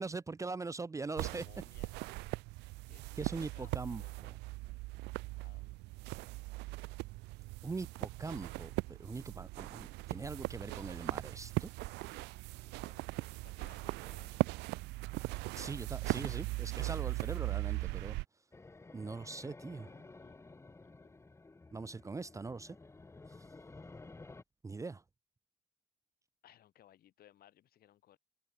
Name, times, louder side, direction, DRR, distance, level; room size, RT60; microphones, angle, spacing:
voice 1, 0.0-1.4 3.2-4.0 7.6-11.7 15.6-18.2 18.9-19.9 21.7-22.8 23.3-23.4 24.6-25.0, right 3 dB, 20° right, 0.8 m, -42 dB
voice 2, 1.2-2.0 2.9-4.2 4.6-5.0 5.4-6.0 12.6-14.4 19.6-21.1 26.4-28.2, left 12 dB, 65° left, 4.7 m, -64 dB
sound 1, 1.2-18.2, right 22 dB, 90° right, 0.5 m, -39 dB
sound 2, 18.5-24.4, left 3 dB, 15° left, 1.9 m, -53 dB
open air
cardioid pair, 110°, 17 cm